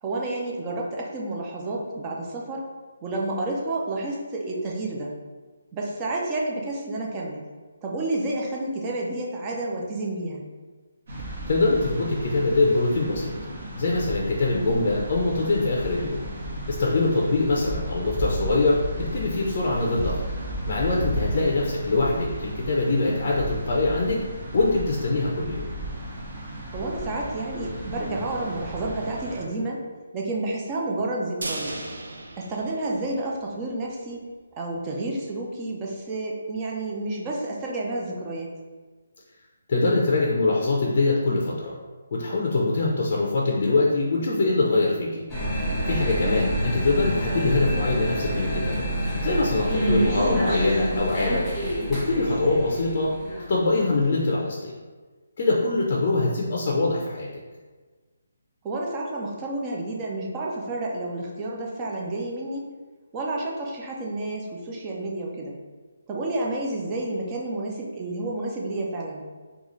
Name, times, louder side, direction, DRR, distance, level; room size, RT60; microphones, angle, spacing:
voice 1, 0.0-2.7 3.0-5.1 5.7-7.4 7.8-10.4 21.2-21.5 26.7-29.9 30.1-31.8 32.4-34.2 34.6-38.5 46.2-46.6 52.3-52.6 58.6-62.7 63.1-65.5 66.1-69.3, right 2 dB, 20° right, -2 dB, 0.5 m, -30 dB
sound 1, 11.1-29.4, right 1 dB, 50° right, 1.2 m, -34 dB
voice 2, 11.5-13.3 13.8-16.2 16.7-20.2 20.7-24.2 24.5-25.7 39.7-41.7 42.1-45.2 45.9-48.9 49.2-51.5 51.9-53.2 53.5-54.7 55.4-57.3, left 2 dB, 45° left, -3 dB, 0.5 m, -23 dB
sound 2, 31.4-33.6 33.9-34.0 34.3-34.4, right 2 dB, 85° right, 0.5 m, -36 dB
sound 3, 45.3-53.9, right 1 dB, 5° left, 1.4 m, -27 dB
3.9 x 2.4 x 3.0 m, 1.3 s
hypercardioid pair, 165°, 0 cm